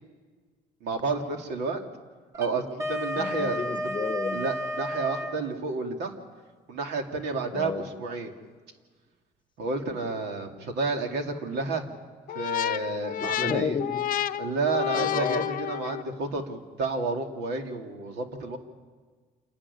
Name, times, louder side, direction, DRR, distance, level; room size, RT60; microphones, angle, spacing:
voice 1, 0.8-1.8 2.4-3.6 4.3-6.1 6.7-8.3 9.6-11.9 12.3-13.8 14.4-18.6, right 3 dB, 80° right, 3 dB, 2.7 m, -30 dB
Wind instrument woodwind instrument, 2.3-5.4, equal, 15° right, 1.3 m, -32 dB
voice 2, 3.2-4.5 7.5-7.9 13.2-14.1 14.9-15.5, left 5 dB, 30° left, 12 dB, 0.9 m, -32 dB
sound 1, 12.3-16.2, left 12 dB, 55° left, 0.6 m, -30 dB
27.5 x 11.5 x 10.0 m, 1.5 s
cardioid pair, 110°, 17 cm